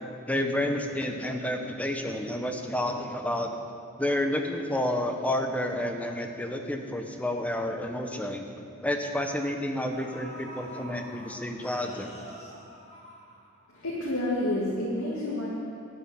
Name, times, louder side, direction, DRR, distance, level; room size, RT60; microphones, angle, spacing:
voice 1, 0.3-3.5 4.0-12.2, left 1 dB, 5° left, 4 dB, 0.9 m, -30 dB
sound 1, 9.9-13.8 14.2-14.3, equal, 30° left, 1.7 m, -46 dB
voice 2, 13.7-15.5, left 1 dB, 90° left, -6 dB, 2.3 m, -29 dB
12.5 x 7.0 x 9.5 m, 2.6 s
head